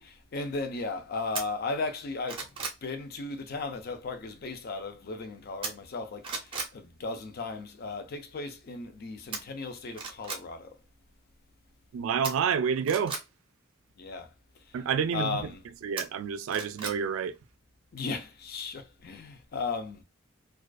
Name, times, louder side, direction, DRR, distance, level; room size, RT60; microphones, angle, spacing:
voice 1, 0.0-2.5 2.8-10.7 14.0-14.3 15.1-15.6 17.9-20.0, left 3 dB, 45° left, 0.4 m, -36 dB
sound 1, 1.3-1.5 2.0-2.8 5.6-6.0 6.2-6.7 9.3-9.4 9.9-10.4 12.2-13.2 16.0-17.0 17.3-17.4, right 4 dB, 25° right, 0.6 m, -36 dB
voice 2, 11.9-13.2 14.7-15.5 15.8-17.3, right 7 dB, 75° right, 0.3 m, -29 dB
2.4 x 2.3 x 2.3 m
head